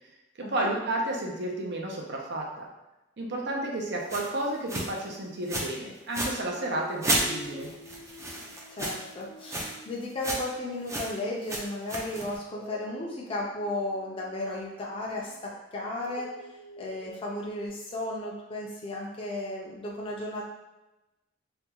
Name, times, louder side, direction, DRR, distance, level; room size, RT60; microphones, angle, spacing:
voice 1, 0.4-2.7 3.2-7.7, right 1 dB, 60° right, -1 dB, 0.6 m, -32 dB
sound 1, 4.1-4.3 4.7-5.0 5.5-5.7 6.0-6.3 7.0-9.1 9.4-9.7 10.0-10.5 10.9-11.1 11.4-12.4, right 1 dB, 15° right, 0.5 m, -31 dB
Dog, 4.5-6.0 6.4-11.5 12.5-17.7, right 1 dB, 90° left, 0.6 m, -49 dB
voice 2, 8.8-16.3 16.8-20.4, left 1 dB, 30° left, -4 dB, 0.6 m, -34 dB
3.4 x 2.3 x 2.9 m, 0.98 s
head